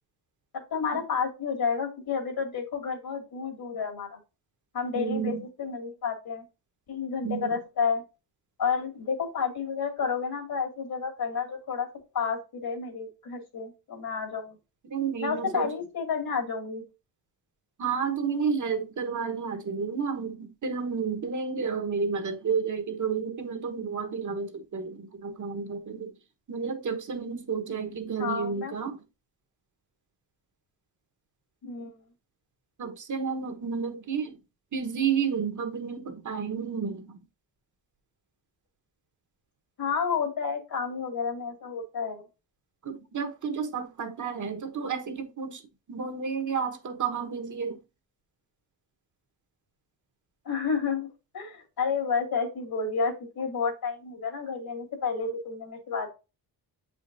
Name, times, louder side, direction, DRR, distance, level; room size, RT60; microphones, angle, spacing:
voice 1, 0.7-4.2 4.7-6.4 6.9-8.0 8.6-11.9 12.1-14.6 15.2-16.8 28.2-28.8 31.6-32.0 39.8-42.2 50.5-51.1 51.3-56.1, left 6 dB, 65° left, 2.4 m, -30 dB
voice 2, 4.9-5.4 7.2-7.5 14.8-15.7 17.8-26.1 26.5-29.0 32.8-34.4 34.7-37.2 42.8-45.6 45.9-47.8, right 6 dB, 50° right, 1.3 m, -31 dB
7.6 x 5.1 x 2.6 m
cardioid pair, 105°, 39 cm